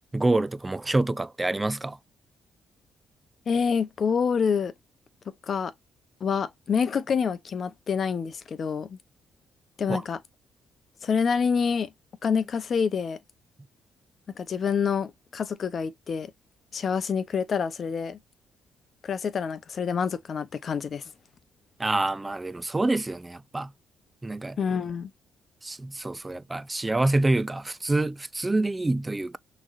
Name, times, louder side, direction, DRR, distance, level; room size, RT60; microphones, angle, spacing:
voice 1, 0.1-2.0 9.9-10.0 21.8-23.7 24.2-24.6 25.6-29.4, right 2 dB, 15° right, 0.4 m, -26 dB
voice 2, 3.5-4.7 5.4-5.7 6.2-9.0 9.8-10.2 11.0-11.9 12.2-13.2 14.4-16.3 16.7-18.2 19.0-21.1 24.6-25.1, left 6 dB, 50° left, 0.8 m, -27 dB
6.2 x 3.2 x 2.5 m
cardioid pair, 90°, 0 cm